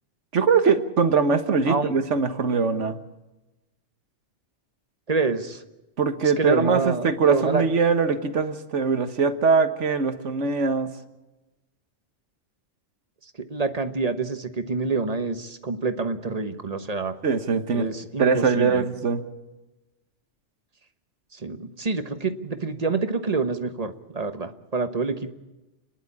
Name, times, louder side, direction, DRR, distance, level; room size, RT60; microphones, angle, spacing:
voice 1, 0.3-3.0 6.0-10.9 17.2-17.9 18.2-19.2, right 5 dB, 80° right, 9 dB, 1.6 m, -22 dB
voice 2, 5.1-5.6 6.4-7.6 13.5-17.1 17.7-18.9 21.3-25.3, right 4 dB, 35° right, 9 dB, 1.2 m, -27 dB
29.5 x 11.0 x 8.7 m, 1.1 s
omnidirectional pair, 1.2 m